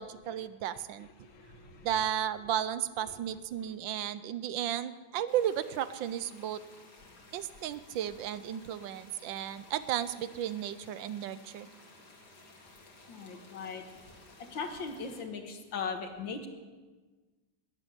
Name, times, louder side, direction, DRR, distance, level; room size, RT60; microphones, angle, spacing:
voice 1, 0.0-1.1 1.8-6.6 7.3-11.7, right 10 dB, 75° right, 14 dB, 1.3 m, -34 dB
voice 2, 1.2-1.9 13.1-13.9 14.4-16.5, left 5 dB, 75° left, 6 dB, 2.2 m, -39 dB
sound 1, 5.3-15.2, left 2 dB, 55° left, 2.7 m, -56 dB
14.0 x 8.5 x 9.8 m, 1.3 s
omnidirectional pair, 2.1 m